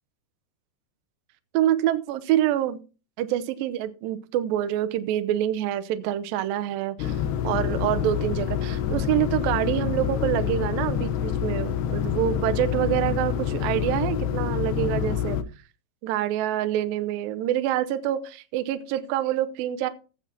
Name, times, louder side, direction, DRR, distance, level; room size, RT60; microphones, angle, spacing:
voice 1, 1.5-2.8 3.2-7.2 7.4-15.4 16.0-19.9, right 12 dB, 80° right, 11 dB, 2.1 m, -26 dB
sound 1, 7.0-15.4, left 9 dB, 80° left, 2.9 m, -27 dB
15.5 x 9.1 x 2.8 m, 0.34 s
omnidirectional pair, 5.0 m